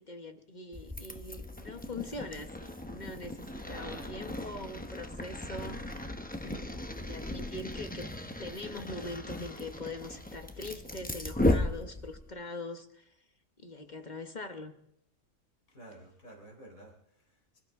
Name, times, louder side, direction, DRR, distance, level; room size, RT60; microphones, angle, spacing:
voice 1, 0.0-5.8 6.5-8.1 8.4-13.1 13.6-14.7, left 2 dB, 35° left, 6 dB, 1.2 m, -42 dB
sound 1, 0.7-12.3, left 1 dB, 10° left, 0.6 m, -36 dB
voice 2, 3.6-4.2 6.3-6.6 15.7-17.6, right 1 dB, 75° left, 1 dB, 4.2 m, -50 dB
25.5 x 14.0 x 3.6 m, 0.72 s
omnidirectional pair, 1.5 m